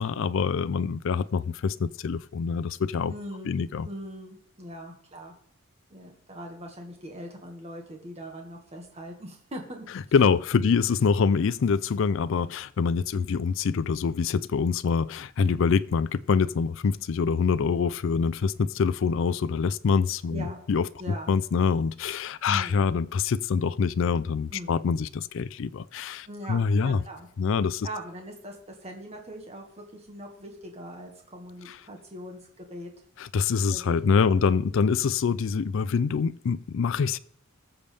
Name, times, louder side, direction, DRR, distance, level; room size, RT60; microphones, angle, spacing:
voice 1, 0.0-3.1 3.5-3.9 10.1-20.9 21.3-27.0 27.4-27.9 31.7-31.8 33.2-37.2, left 5 dB, 65° left, 0.4 m, -25 dB
voice 2, 3.1-5.3 5.9-9.9 10.5-10.8 20.3-20.6 21.0-21.3 22.5-22.9 24.5-24.9 26.3-27.3 27.8-32.9 33.7-34.5, equal, 30° right, 1.8 m, -41 dB
20.5 x 6.9 x 3.4 m
head